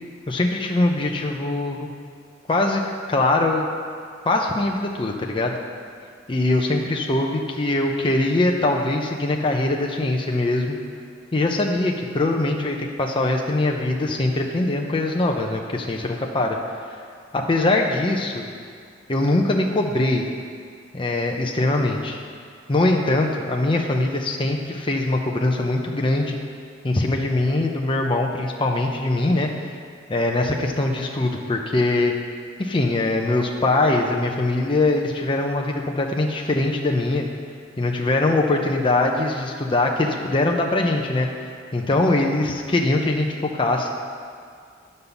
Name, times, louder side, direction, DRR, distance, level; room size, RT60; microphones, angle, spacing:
voice 1, 0.3-1.9 2.5-2.8 3.1-3.7 4.2-5.6 6.3-10.8 11.3-16.6 17.3-18.4 19.1-20.2 20.9-22.2 22.7-26.4 26.8-29.5 30.1-32.1 32.6-37.3 37.8-41.3 41.7-43.9, left 2 dB, 25° left, 1 dB, 0.6 m, -22 dB
9.8 x 5.4 x 7.0 m, 2.2 s
head